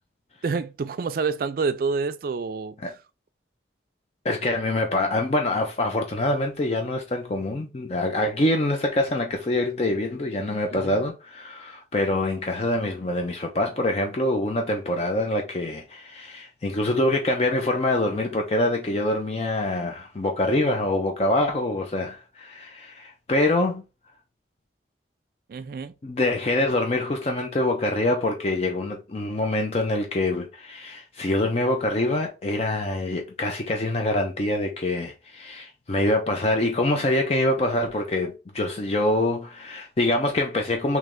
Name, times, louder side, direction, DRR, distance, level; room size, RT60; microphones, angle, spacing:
voice 1, 0.4-2.8 10.7-10.9 25.5-25.9, right 4 dB, 55° right, 0.3 m, -28 dB
voice 2, 4.2-23.8 26.0-41.0, left 1 dB, 35° left, 0.5 m, -25 dB
3.3 x 3.0 x 3.6 m
head